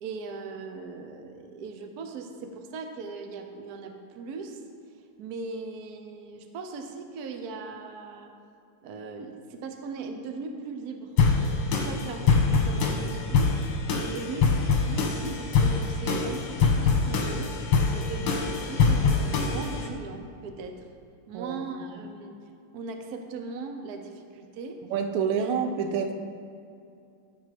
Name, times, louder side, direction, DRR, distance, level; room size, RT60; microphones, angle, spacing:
voice 1, 0.0-4.6 5.2-8.3 8.8-11.1 11.8-13.6 13.9-14.5 14.9-17.6 17.8-20.8 21.3-22.4 22.7-24.8, right 4 dB, 55° right, 5 dB, 1.2 m, -39 dB
sound 1, 11.2-19.9, left 4 dB, 75° left, 2.0 m, -24 dB
voice 2, 24.9-26.1, right 6 dB, 85° right, 6 dB, 1.7 m, -27 dB
14.5 x 5.8 x 5.2 m, 2.5 s
omnidirectional pair, 2.4 m